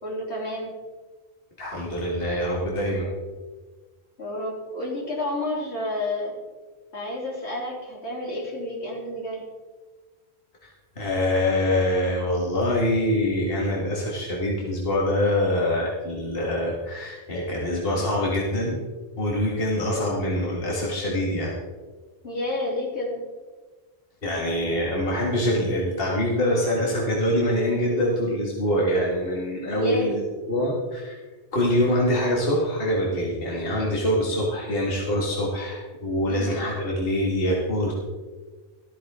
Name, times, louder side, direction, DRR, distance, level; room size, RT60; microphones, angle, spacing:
voice 1, 0.0-0.7 4.2-6.3 6.9-9.4 22.2-23.2 29.7-30.1 36.3-36.6, left 1 dB, 80° left, -3 dB, 3.4 m, -30 dB
voice 2, 1.6-3.1 10.6-10.7 11.0-18.8 19.2-21.6 24.2-31.1 31.5-37.9, left 1 dB, 60° left, -4 dB, 2.1 m, -24 dB
13.5 x 13.0 x 3.7 m, 1.4 s
omnidirectional pair, 1.1 m